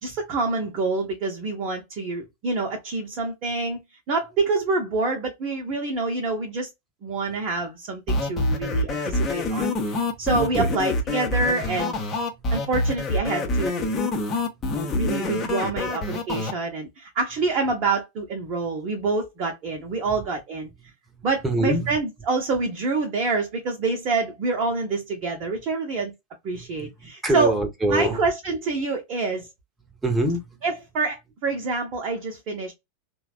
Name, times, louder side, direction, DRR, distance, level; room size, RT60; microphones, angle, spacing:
voice 1, 0.0-3.8 4.1-6.7 7.0-9.7 10.2-12.0 12.5-13.9 14.9-20.7 21.2-26.1 26.4-27.5 27.9-29.5 30.6-32.7, right 3 dB, 40° right, 0.8 m, -26 dB
sound 1, 8.1-16.5, left 2 dB, 25° left, 0.8 m, -26 dB
voice 2, 12.3-12.6 20.0-20.2 21.1-22.0 26.5-28.2 30.0-30.6, right 1 dB, 10° right, 0.9 m, -27 dB
3.2 x 2.2 x 2.3 m
figure-of-eight pair, 90°, 0 cm